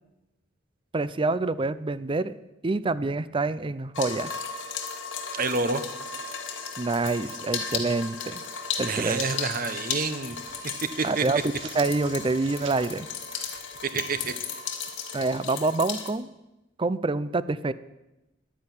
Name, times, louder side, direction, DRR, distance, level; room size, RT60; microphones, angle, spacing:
voice 1, 0.9-2.4 2.6-4.3 6.8-8.4 8.8-9.2 11.0-11.4 11.7-13.1 15.1-16.3 16.8-17.7, right 3 dB, 30° right, 16 dB, 0.5 m, -26 dB
sound 1, 3.9-16.1, left 6 dB, 85° left, 1.9 m, -35 dB
voice 2, 5.3-5.8 8.8-10.4 11.0-11.2 13.8-14.3, right 4 dB, 50° right, 11 dB, 1.1 m, -28 dB
sound 2, 10.3-14.5, right 6 dB, 80° right, 1.7 m, -48 dB
10.5 x 10.0 x 9.7 m, 0.98 s
head